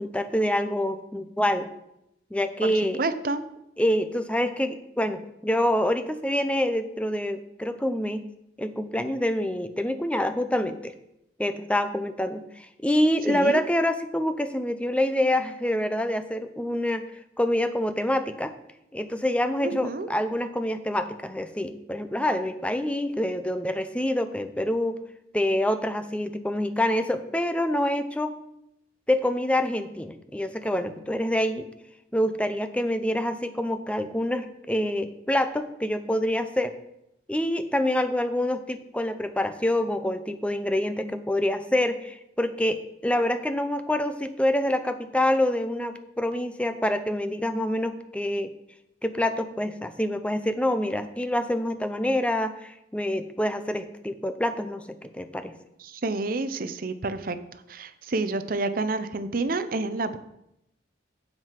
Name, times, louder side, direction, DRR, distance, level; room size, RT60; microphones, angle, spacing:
voice 1, 0.0-1.7 2.3-3.0 3.8-8.2 8.6-10.9 11.4-17.0 17.4-18.5 18.9-25.0 25.3-28.3 29.1-31.7 32.1-36.7 37.3-48.5 49.0-55.5, left 1 dB, 5° left, 9 dB, 0.6 m, -26 dB
voice 2, 2.6-3.4 13.3-13.5 19.6-20.1 55.8-57.4 57.7-60.2, right 3 dB, 50° right, 11 dB, 0.7 m, -29 dB
7.8 x 7.5 x 5.8 m, 0.82 s
head